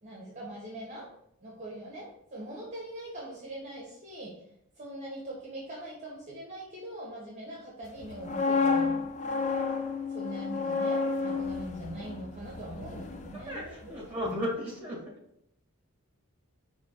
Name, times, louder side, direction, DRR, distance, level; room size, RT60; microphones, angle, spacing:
voice 1, 0.0-1.1 1.4-4.4 4.8-9.0 10.1-14.1, right 1 dB, 30° right, -4 dB, 1.3 m, -42 dB
sound 1, 8.0-13.9 14.2-14.5, left 4 dB, 30° left, 0.5 m, -31 dB
voice 2, 13.3-15.0, left 1 dB, 10° right, -4 dB, 2.2 m, -35 dB
5.2 x 3.5 x 5.3 m, 0.75 s
head